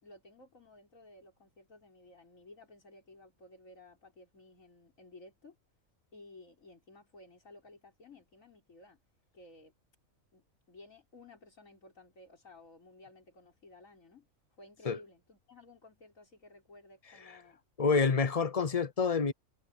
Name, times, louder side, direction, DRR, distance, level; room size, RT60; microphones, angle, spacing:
voice 1, 0.0-5.6 6.1-9.0 9.3-9.7 10.3-14.3 14.6-17.6, left 2 dB, 80° left, 5.0 m, -56 dB
voice 2, 17.8-19.3, left 5 dB, 40° left, 0.6 m, -27 dB
omnidirectional pair, 1.4 m